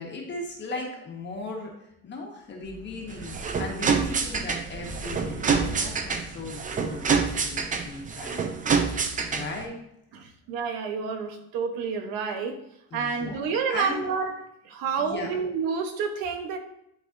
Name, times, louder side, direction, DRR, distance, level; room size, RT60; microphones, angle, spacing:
voice 1, 0.0-1.7 2.0-8.4 9.3-9.7 12.9-13.4 13.7-14.0 15.0-15.3, left 3 dB, 30° left, 1.4 m, -37 dB
Wind, 2.6-7.9, right 1 dB, 45° right, 1.4 m, -41 dB
sound 1, 3.1-9.7, right 5 dB, 25° right, 0.5 m, -27 dB
voice 2, 10.1-12.6 12.9-16.6, right 5 dB, 85° right, 1.1 m, -29 dB
11.0 x 4.0 x 2.6 m
cardioid pair, 145°, 34 cm